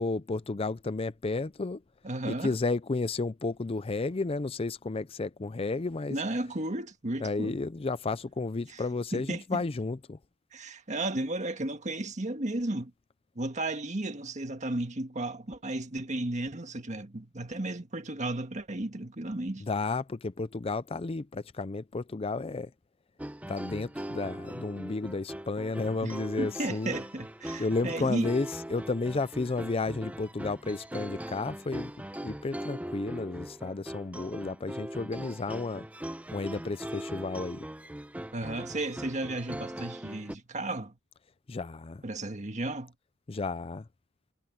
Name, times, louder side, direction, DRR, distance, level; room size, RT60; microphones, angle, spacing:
voice 1, 0.0-1.8 2.3-6.2 7.2-10.2 19.6-22.7 23.5-27.0 27.6-31.9 32.2-35.9 36.3-37.6 41.5-42.0 43.3-43.9, left 3 dB, 30° left, 0.5 m, -32 dB
voice 2, 2.0-2.5 6.1-7.6 8.7-8.8 9.1-9.6 10.5-12.9 13.4-19.7 26.0-28.3 38.3-41.0 42.0-42.9, right 2 dB, 40° right, 1.7 m, -34 dB
sound 1, 23.2-40.3, right 1 dB, 10° right, 1.0 m, -40 dB
head